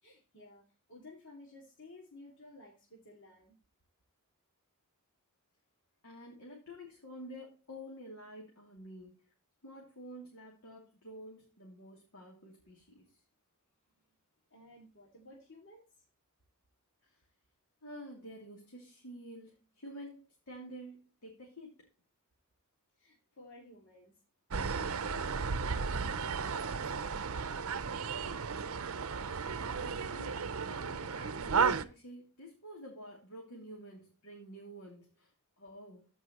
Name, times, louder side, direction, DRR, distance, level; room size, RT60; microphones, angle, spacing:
voice 1, 0.0-3.6 14.5-16.0 23.0-24.2 24.5-28.1, left 1 dB, 55° left, -2 dB, 2.4 m, -55 dB
voice 2, 6.0-9.3 9.6-13.2 17.0-17.2 17.8-21.9 29.5-36.1, equal, 75° left, -2 dB, 2.9 m, -50 dB
sound 1, 24.5-31.8, right 5 dB, 70° right, 0.7 m, -34 dB
14.5 x 5.5 x 2.9 m, 0.33 s
head